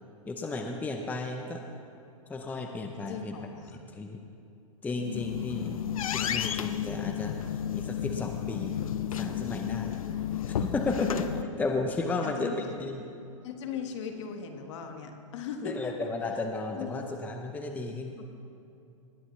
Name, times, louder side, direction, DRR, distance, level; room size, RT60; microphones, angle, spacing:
voice 1, 0.3-1.6 2.3-3.4 3.9-4.2 4.8-5.7 6.1-7.4 7.7-8.8 9.1-10.0 10.5-13.1 15.6-18.1, left 3 dB, 10° left, 3 dB, 0.7 m, -33 dB
voice 2, 3.1-3.8 5.5-5.8 12.2-12.5 13.4-15.9 16.7-17.0 18.2-18.3, left 7 dB, 60° left, 5 dB, 1.5 m, -38 dB
sound 1, 4.9-11.4, left 10 dB, 80° left, 0.6 m, -32 dB
19.0 x 10.0 x 3.2 m, 2.6 s
hypercardioid pair, 130°, 17 cm